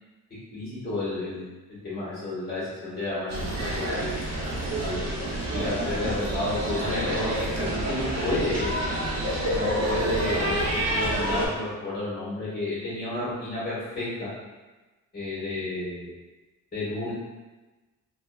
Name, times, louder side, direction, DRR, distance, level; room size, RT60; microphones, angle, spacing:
voice 1, 0.5-4.2 4.8-5.1 5.5-8.8 9.5-14.3 15.1-16.1 16.7-17.1, left 2 dB, 30° left, -10 dB, 1.5 m, -31 dB
sound 1, 3.3-11.5, right 1 dB, 55° right, 0.7 m, -28 dB
3.1 x 2.4 x 2.3 m, 1.2 s
cardioid pair, 120°, 32 cm